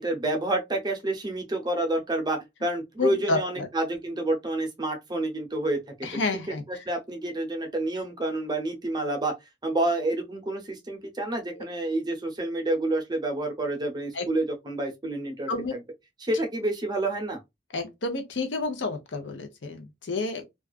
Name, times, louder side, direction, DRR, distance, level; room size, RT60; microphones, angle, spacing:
voice 1, 0.0-6.1 6.7-9.3 9.6-15.5 16.2-17.4, right 2 dB, 25° right, 0.6 m, -29 dB
voice 2, 3.0-3.7 6.0-6.6 11.6-11.7 14.1-14.3 15.5-15.7 17.7-20.4, left 3 dB, 90° left, 0.7 m, -30 dB
2.4 x 2.3 x 2.3 m
head